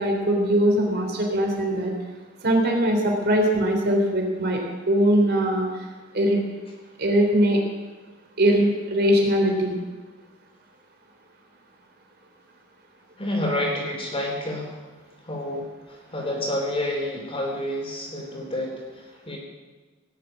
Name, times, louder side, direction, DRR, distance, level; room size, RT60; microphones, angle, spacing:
voice 1, 0.0-1.9 2.4-4.6 4.9-5.7 6.1-6.4 7.0-7.6 8.4-9.8, right 1 dB, 50° right, 1 dB, 3.3 m, -21 dB
voice 2, 13.2-14.8 15.2-19.4, left 1 dB, 30° left, -1 dB, 3.9 m, -29 dB
17.5 x 7.9 x 9.1 m, 1.3 s
head